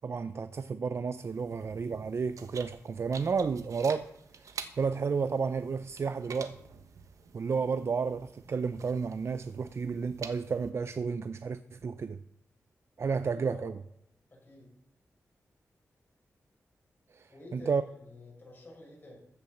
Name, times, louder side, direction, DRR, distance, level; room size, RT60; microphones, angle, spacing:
voice 1, 0.0-4.1 4.4-6.6 7.3-12.2 13.0-13.7 17.1-17.8, right 5 dB, 55° right, 0.5 m, -32 dB
sound 1, 1.2-10.7, right 5 dB, 85° right, 1.2 m, -49 dB
voice 2, 13.3-13.7 14.3-14.7 17.3-19.3, left 1 dB, 40° left, 6.6 m, -49 dB
14.5 x 7.0 x 7.1 m
wide cardioid pair, 100°, 5 cm